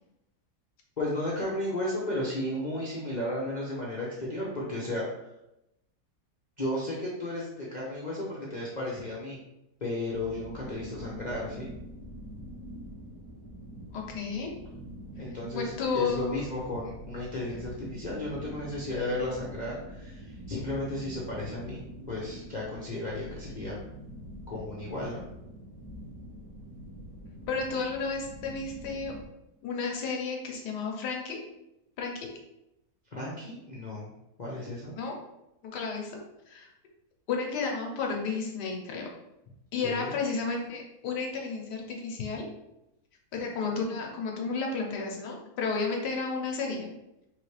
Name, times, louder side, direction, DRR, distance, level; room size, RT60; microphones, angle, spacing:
voice 1, 1.0-5.1 6.6-9.4 9.8-11.7 15.2-23.8 24.5-25.2 33.1-34.1 34.4-35.0 39.8-40.2, left 1 dB, 40° left, -5 dB, 0.6 m, -34 dB
sound 1, 10.1-29.2, equal, 90° right, 1.7 m, -44 dB
voice 2, 13.9-14.5 15.5-16.4 27.5-29.2 29.6-31.4 32.0-32.3 34.9-35.1 35.6-36.2 36.5-36.7 37.3-39.1 39.7-42.4 43.3-46.9, left 4 dB, 90° left, 0 dB, 1.4 m, -32 dB
4.8 x 3.1 x 3.2 m, 0.88 s
omnidirectional pair, 1.8 m